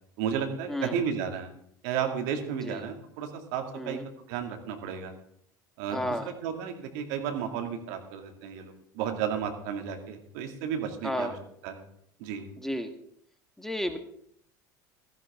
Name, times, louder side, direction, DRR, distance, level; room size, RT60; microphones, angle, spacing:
voice 1, 0.2-1.5 1.8-4.0 4.3-5.1 5.8-11.4 11.6-11.8 12.2-12.4, right 7 dB, 70° right, 5 dB, 2.2 m, -33 dB
voice 2, 0.7-1.0 2.5-2.8 3.7-4.0 5.9-6.3 11.0-11.3 12.6-12.9 13.6-14.0, left 1 dB, 5° left, 7 dB, 1.6 m, -32 dB
15.5 x 14.5 x 3.6 m, 0.69 s
hypercardioid pair, 75°, 10 cm